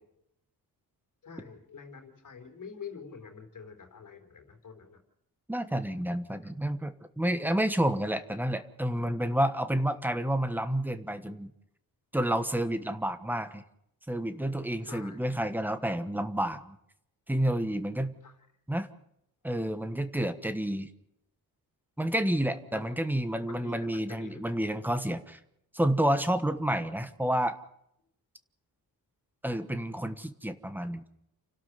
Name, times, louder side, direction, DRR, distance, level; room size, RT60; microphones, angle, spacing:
voice 1, 1.2-5.0 14.8-15.2 18.2-18.4 22.2-22.9 23.5-24.4, left 6 dB, 55° left, 5 dB, 3.8 m, -46 dB
voice 2, 5.5-11.5 12.1-13.6 14.1-16.8 17.3-18.1 18.7-18.9 19.4-20.9 22.0-25.4 25.7-27.6 29.4-31.0, right 1 dB, 5° right, 10 dB, 1.2 m, -29 dB
29.5 x 12.5 x 8.0 m, 0.76 s
wide cardioid pair, 175°, 36 cm